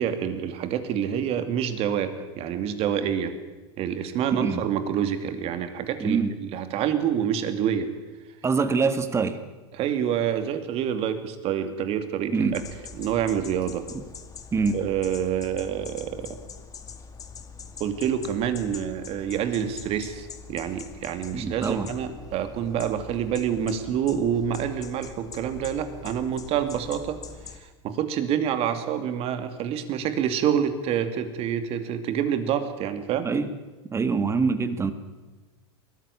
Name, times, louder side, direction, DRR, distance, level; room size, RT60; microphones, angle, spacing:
voice 1, 0.0-3.3 3.8-7.9 9.7-12.6 12.9-13.8 14.7-16.4 17.8-27.2 27.5-33.3, right 9 dB, 45° right, 9 dB, 2.6 m, -27 dB
voice 2, 4.3-4.6 6.0-6.3 8.4-9.4 12.3-12.6 14.5-14.8 21.3-21.9 33.2-33.5 33.9-34.9, right 4 dB, 20° right, 11 dB, 1.8 m, -24 dB
sound 1, 12.5-27.6, left 6 dB, 25° left, 2.1 m, -43 dB
21.0 x 14.5 x 9.9 m, 1.2 s
supercardioid pair, 120°, 14 cm